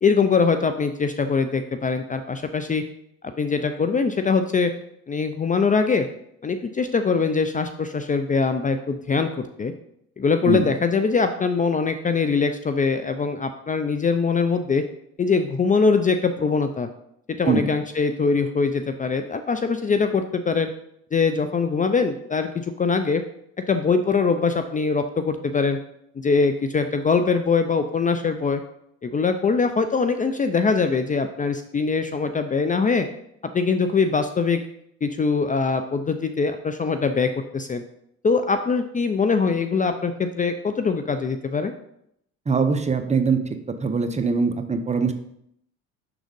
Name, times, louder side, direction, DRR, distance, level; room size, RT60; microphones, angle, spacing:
voice 1, 0.0-2.8 3.4-4.7 5.1-6.1 6.4-9.7 10.2-14.8 15.2-16.9 17.4-20.7 21.1-23.2 23.7-25.8 26.2-28.6 29.0-33.1 33.5-34.6 35.0-37.8 38.2-41.7, left 5 dB, 25° left, 8 dB, 0.5 m, -22 dB
voice 2, 42.5-43.4 43.8-45.1, right 4 dB, 20° right, 7 dB, 0.7 m, -22 dB
6.1 x 3.8 x 5.2 m, 0.74 s
supercardioid pair, 75°, 32 cm